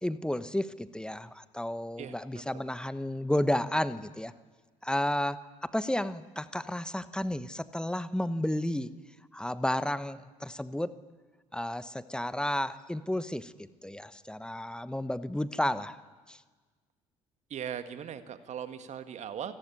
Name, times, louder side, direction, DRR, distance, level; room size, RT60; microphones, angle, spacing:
voice 1, 0.0-4.3 4.8-8.9 9.3-11.0 11.5-13.5 13.8-16.0 16.3-16.4, left 1 dB, 5° left, 14 dB, 1.2 m, -32 dB
voice 2, 2.0-2.4 17.5-19.5, right 8 dB, 45° right, 9 dB, 1.7 m, -39 dB
28.5 x 20.0 x 9.7 m, 1.4 s
figure-of-eight pair, 50°, 17 cm